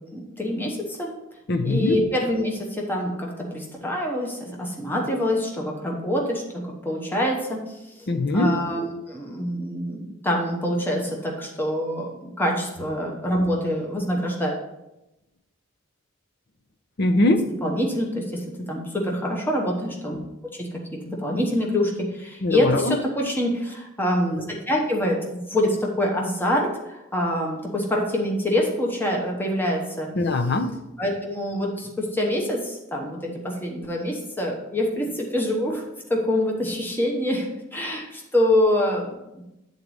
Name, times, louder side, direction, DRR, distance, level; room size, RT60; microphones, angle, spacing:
voice 1, 0.1-1.1 1.6-8.1 8.3-14.6 17.6-20.2 20.5-30.1 31.0-35.8 36.1-39.4, left 1 dB, 10° left, -1 dB, 0.9 m, -25 dB
voice 2, 1.5-2.0 8.1-8.6 17.0-17.5 22.4-23.0 30.2-30.7, left 2 dB, 50° left, 8 dB, 0.6 m, -21 dB
8.4 x 4.0 x 4.8 m, 0.93 s
head